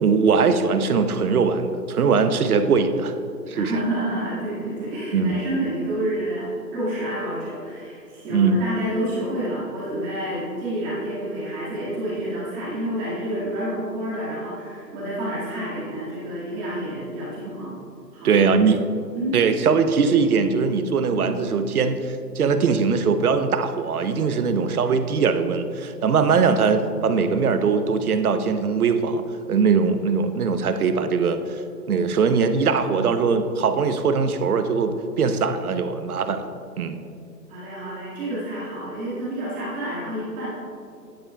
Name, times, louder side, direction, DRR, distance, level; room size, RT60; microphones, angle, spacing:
voice 1, 0.0-3.1 3.5-3.7 5.1-5.3 8.3-8.6 18.2-18.9 19.3-29.2 29.5-31.6 31.9-36.5 36.8-37.0, right 5 dB, 60° right, 9 dB, 0.9 m, -21 dB
voice 2, 3.5-17.8 18.1-18.5 19.1-19.4 37.5-40.5, right 1 dB, 15° right, -9 dB, 1.9 m, -29 dB
12.0 x 10.0 x 2.3 m, 2.6 s
hypercardioid pair, 155°, 50 cm